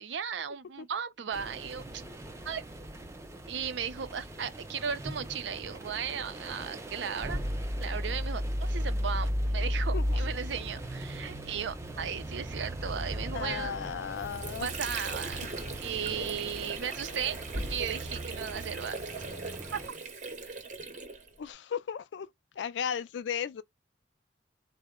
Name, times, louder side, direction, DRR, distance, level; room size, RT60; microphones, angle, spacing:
voice 1, 0.0-2.0 2.5-2.6 3.5-7.4 7.8-13.8 14.6-15.4 15.8-19.0 19.7-20.0, right 7 dB, 80° right, 0.5 m, -36 dB
sound 1, 1.3-19.9, equal, 15° right, 0.4 m, -36 dB
voice 2, 13.3-14.7 21.4-22.3 22.6-23.6, left 8 dB, 75° left, 0.3 m, -35 dB
Water / Sink (filling or washing), 13.9-21.5, right 4 dB, 40° right, 0.7 m, -40 dB
3.7 x 2.1 x 3.5 m
head